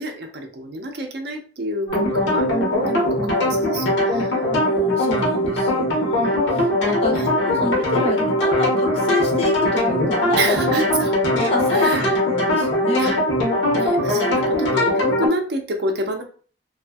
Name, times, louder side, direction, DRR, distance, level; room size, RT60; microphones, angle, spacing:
voice 1, 0.0-4.4 5.2-5.3 5.9-6.4 7.1-7.3 10.4-11.2 11.7-12.2 13.0-13.2 13.7-16.2, right 1 dB, 60° right, 3 dB, 0.5 m, -28 dB
sound 1, 1.9-15.3, left 1 dB, 85° left, 0.9 m, -20 dB
voice 2, 1.9-2.5 4.5-10.9 11.3-13.2, left 2 dB, 35° left, 1 dB, 0.6 m, -28 dB
2.5 x 2.4 x 2.3 m, 0.41 s
head